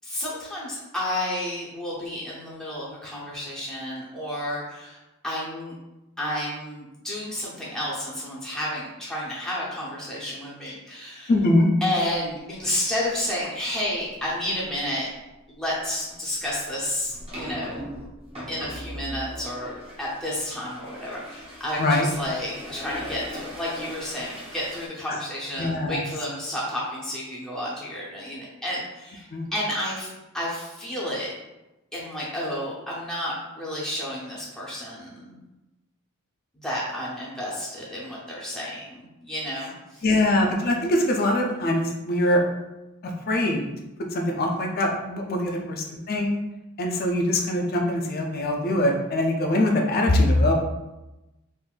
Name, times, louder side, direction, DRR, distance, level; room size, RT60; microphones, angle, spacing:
voice 1, 0.0-5.7 6.2-11.3 11.8-15.1 15.5-17.8 18.5-31.3 31.9-35.4 36.5-40.0 45.4-45.7, left 1 dB, 5° left, -7 dB, 0.6 m, -31 dB
voice 2, 11.3-11.7 21.8-22.1 25.1-25.2 25.6-26.0 29.3-29.5 40.0-42.4 43.3-43.6 44.1-46.3 46.8-50.5, left 1 dB, 45° left, 1 dB, 0.5 m, -23 dB
sound 1, 14.0-14.2 14.6-14.9 16.0-24.9, equal, 25° right, 0.8 m, -39 dB
3.7 x 2.6 x 2.4 m, 1.0 s
head